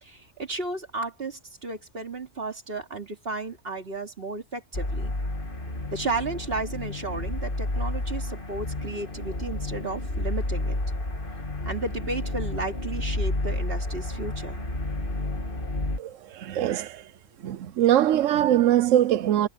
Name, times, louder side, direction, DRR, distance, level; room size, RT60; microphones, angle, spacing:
voice 1, 0.0-5.1 5.9-10.8 11.7-14.6, right 3 dB, 50° right, 2.8 m, -33 dB
sound 1, 4.7-16.0, left 2 dB, 45° left, 2.5 m, -31 dB
voice 2, 16.0-17.0 17.4-19.5, right 12 dB, 80° right, 1.0 m, -22 dB
omnidirectional pair, 1.3 m